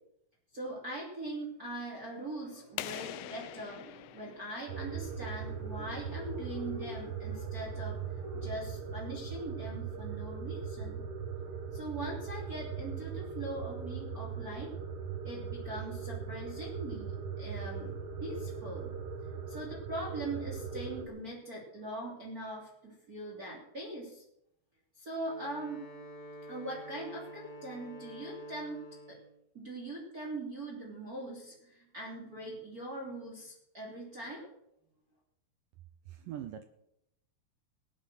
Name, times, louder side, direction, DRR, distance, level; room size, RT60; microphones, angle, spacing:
voice 1, 0.5-11.0 11.7-14.7 15.2-17.9 18.2-18.9 19.5-24.2 25.0-25.8 26.5-29.2 29.5-34.5, right 1 dB, 25° right, -2 dB, 3.2 m, -41 dB
sound 1, 2.8-5.4, left 15 dB, 85° left, 2.7 m, -44 dB
sound 2, 4.7-21.1, right 6 dB, 50° right, 1.9 m, -39 dB
Wind instrument woodwind instrument, 25.1-29.3, equal, 50° left, 3.2 m, -48 dB
voice 2, 36.1-36.6, right 10 dB, 75° right, 9 dB, 2.0 m, -42 dB
18.0 x 9.3 x 6.2 m, 0.78 s
omnidirectional pair, 4.6 m